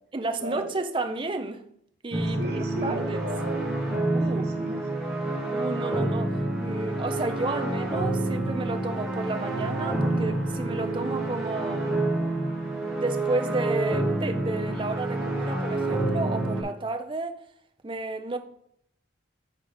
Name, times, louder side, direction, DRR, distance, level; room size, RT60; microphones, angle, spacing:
voice 1, 0.1-1.6 2.0-3.2 4.1-4.5 5.5-12.0 13.0-17.4 17.8-18.4, right 2 dB, 25° right, 0.5 m, -32 dB
sound 1, 2.1-16.6, right 2 dB, ahead, 1.3 m, -28 dB
voice 2, 2.4-3.7 4.3-5.1, equal, 55° right, 1.0 m, -35 dB
7.4 x 3.9 x 5.0 m
head